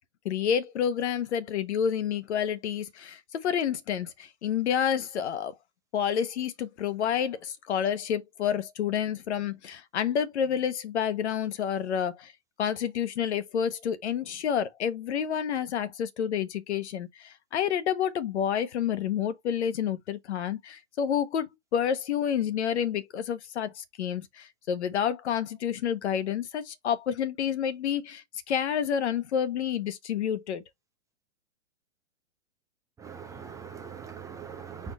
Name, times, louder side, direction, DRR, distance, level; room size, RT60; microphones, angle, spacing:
voice 1, 0.2-5.5 5.9-12.3 12.6-30.6, left 8 dB, 65° left, 1.1 m, -29 dB
voice 2, 33.0-34.9, right 6 dB, 10° right, 0.5 m, -41 dB
4.5 x 2.8 x 4.0 m
hypercardioid pair, 130°, 36 cm